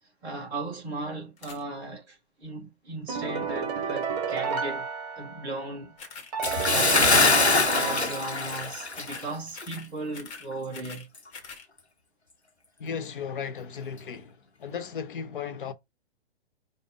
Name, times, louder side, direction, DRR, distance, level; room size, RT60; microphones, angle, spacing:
voice 1, 0.0-4.9 5.2-6.0 6.4-11.1, right 2 dB, 5° right, 0.3 m, -37 dB
sound 1, 1.4-1.6 6.0-6.3 6.6-6.9 7.2-7.5 7.8-8.1 8.3-8.7 8.9-9.3 9.5-9.9 10.1-11.1 11.3-11.7, left 5 dB, 20° left, 1.3 m, -44 dB
sound 2, 3.1-5.7 6.3-8.8, right 6 dB, 40° right, 1.0 m, -31 dB
Bathtub (filling or washing) / Splash splatter, 6.4-9.3 9.6-9.8 10.3-10.4, left 3 dB, 90° left, 0.9 m, -23 dB
voice 2, 12.8-15.7, left 7 dB, 55° left, 1.0 m, -35 dB
5.2 x 2.2 x 3.5 m
figure-of-eight pair, 115°, 32 cm